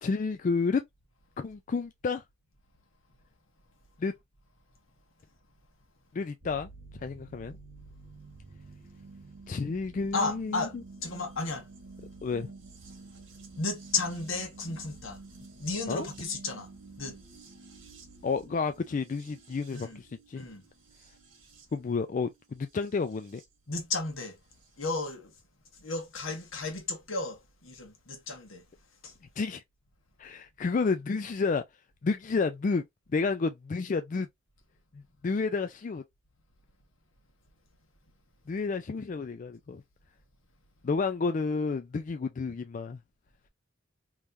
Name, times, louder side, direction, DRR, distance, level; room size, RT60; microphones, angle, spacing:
voice 1, 0.0-0.8 1.4-2.2 4.0-4.1 6.1-6.7 7.0-7.6 9.5-10.7 12.2-12.5 15.9-16.1 18.2-20.5 21.7-23.4 29.4-29.6 30.2-31.6 32.0-32.8 33.1-34.3 34.9-36.0 38.5-39.8 40.8-43.0, left 4 dB, 40° left, 0.3 m, -30 dB
sound 1, 6.4-23.4 24.6-24.7, right 3 dB, 75° right, 1.5 m, -50 dB
voice 2, 10.1-10.7 11.0-11.6 13.6-15.2 15.6-16.7 17.0-17.1 19.7-20.0 20.3-20.6 23.7-24.4 24.8-25.3 25.8-28.6 29.0-29.1, left 3 dB, 85° left, 1.3 m, -33 dB
3.6 x 3.1 x 2.6 m
head